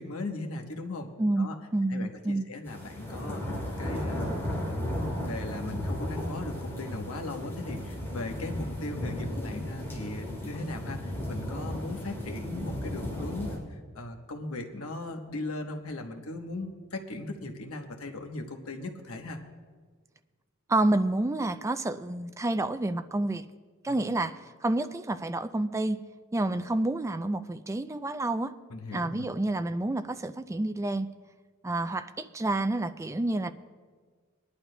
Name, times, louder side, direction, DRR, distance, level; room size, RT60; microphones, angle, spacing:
voice 1, 0.0-1.1 1.4-1.6 1.9-19.4 23.9-24.0 28.7-29.3, left 2 dB, 80° left, 4 dB, 1.0 m, -38 dB
voice 2, 1.2-2.5 20.7-23.4 23.8-26.0 26.3-28.5 28.9-31.1 31.6-33.5, right 2 dB, 15° right, 10 dB, 0.4 m, -29 dB
sound 1, 2.7-13.6, left 1 dB, 10° left, 2.9 m, -35 dB
22.5 x 11.5 x 2.2 m, 1.5 s
head